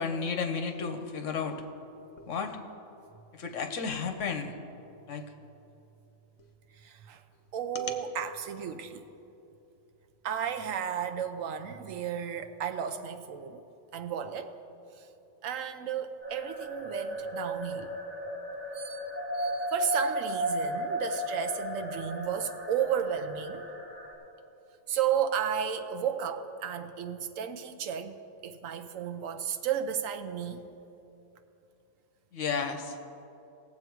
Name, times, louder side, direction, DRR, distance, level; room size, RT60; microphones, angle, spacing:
voice 1, 0.0-1.6 2.2-2.6 3.3-4.6 5.1-5.3 7.7-7.9 32.3-33.0, left 5 dB, 65° left, 7 dB, 1.2 m, -33 dB
voice 2, 6.8-7.2 7.5-9.1 10.2-13.6 13.9-14.5 15.4-17.9 18.7-23.7 24.9-28.2 28.4-30.6, right 8 dB, 75° right, 8 dB, 1.1 m, -33 dB
sound 1, 16.2-24.1, equal, 10° right, 1.8 m, -35 dB
18.0 x 7.5 x 4.6 m, 2.9 s
omnidirectional pair, 1.4 m